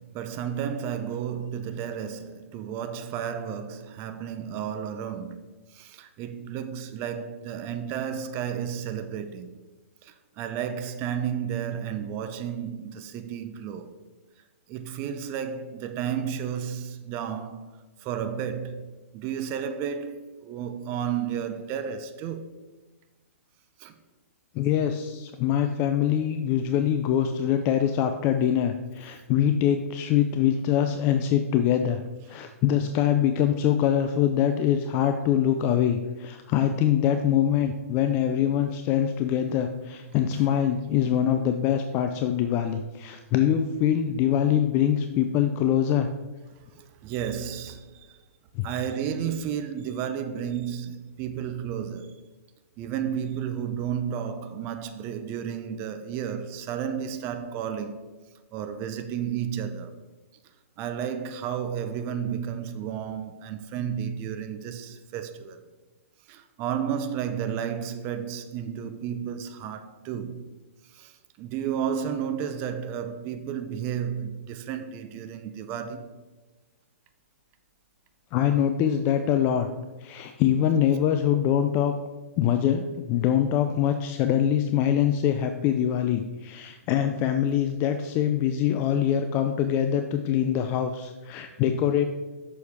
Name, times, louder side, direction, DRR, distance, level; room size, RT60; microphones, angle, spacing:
voice 1, 0.0-5.4 5.7-9.5 10.0-13.9 14.7-22.6 23.8-24.0 40.0-40.7 41.2-41.3 46.6-48.2 48.6-52.2 52.8-58.1 58.5-60.0 60.8-65.6 66.3-70.5 70.8-76.2, right 8 dB, 30° right, 0.6 m, -32 dB
voice 2, 24.5-32.0 32.3-46.1 48.5-48.7 78.3-79.7 80.0-81.9 82.4-92.0, left 9 dB, 30° left, 0.4 m, -24 dB
6.9 x 6.2 x 3.5 m
hypercardioid pair, 135°, 8 cm